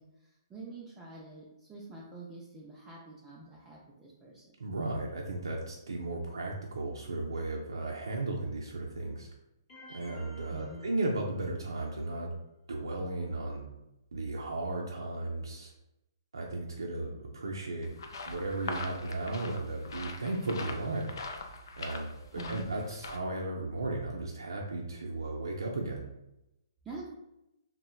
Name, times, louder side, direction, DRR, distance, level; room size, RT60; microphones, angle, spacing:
voice 1, 0.0-4.6 10.5-10.9 22.3-22.7 26.8-27.1, right 3 dB, 15° right, -6 dB, 0.4 m, -46 dB
voice 2, 4.6-9.3 9.9-12.3 12.7-13.7 14.1-15.7 16.3-17.9 18.3-21.2 21.8-26.1, right 2 dB, 90° right, -1 dB, 0.4 m, -35 dB
sound 1, 9.7-11.8, left 2 dB, 30° left, 0.9 m, -52 dB
sound 2, 17.8-23.2, left 3 dB, 70° left, 0.3 m, -42 dB
2.9 x 2.0 x 2.2 m, 0.89 s
hypercardioid pair, 140°, 2 cm